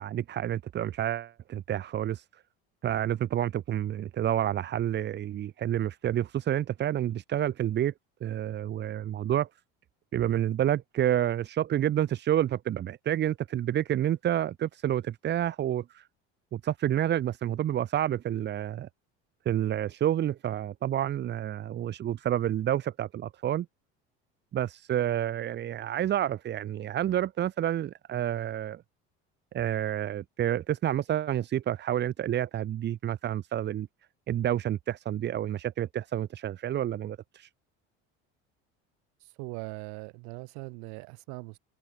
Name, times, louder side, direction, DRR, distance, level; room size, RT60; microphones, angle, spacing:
voice 1, 0.0-2.2 2.8-7.9 8.2-9.5 10.1-16.0 16.5-18.9 19.5-23.7 24.5-28.8 29.5-33.9 34.3-37.5, right 11 dB, 35° right, 0.8 m, -29 dB
voice 2, 39.2-41.6, right 33 dB, 75° right, 2.3 m, -41 dB
supercardioid pair, 105°, 29 cm